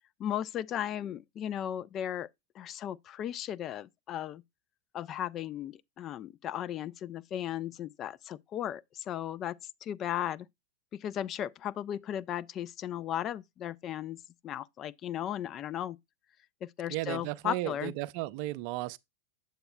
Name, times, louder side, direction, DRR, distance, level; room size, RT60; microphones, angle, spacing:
voice 1, 0.2-2.3 2.6-4.4 4.9-10.5 10.9-14.2 14.4-16.0 16.6-17.9, left 11 dB, 30° left, 0.3 m, -36 dB
voice 2, 16.9-19.0, right 17 dB, 45° right, 0.4 m, -34 dB
7.8 x 7.8 x 2.2 m
figure-of-eight pair, 90°, 0 cm